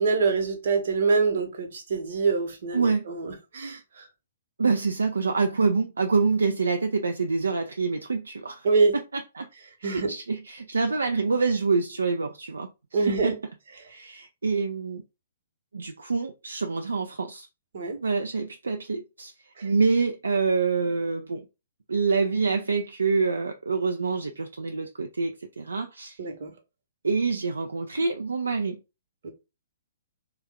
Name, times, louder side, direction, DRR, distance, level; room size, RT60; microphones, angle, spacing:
voice 1, 0.0-4.0 8.6-8.9 9.8-10.1 12.9-13.3 17.7-18.0 19.6-19.7 26.2-26.5 29.2-29.3, right 4 dB, 55° right, 1.0 m, -25 dB
voice 2, 2.7-3.1 4.6-8.7 8.9-9.5 9.8-13.3 13.9-15.0 15.7-17.5 18.0-19.3 19.6-21.5 21.9-26.2 27.0-28.8, right 4 dB, 70° right, 0.4 m, -26 dB
3.4 x 2.3 x 3.4 m
figure-of-eight pair, 120°, 0 cm